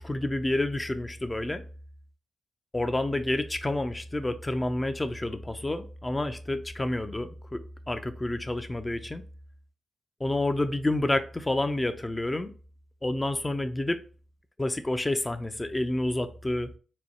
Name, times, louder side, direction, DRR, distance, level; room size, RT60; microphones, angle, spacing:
voice 1, 0.0-1.6 2.7-7.6 7.9-9.2 10.2-12.5 13.0-14.0 14.6-16.7, left 1 dB, 20° left, 0.6 m, -29 dB
4.2 x 2.3 x 4.4 m
supercardioid pair, 45°, 0 cm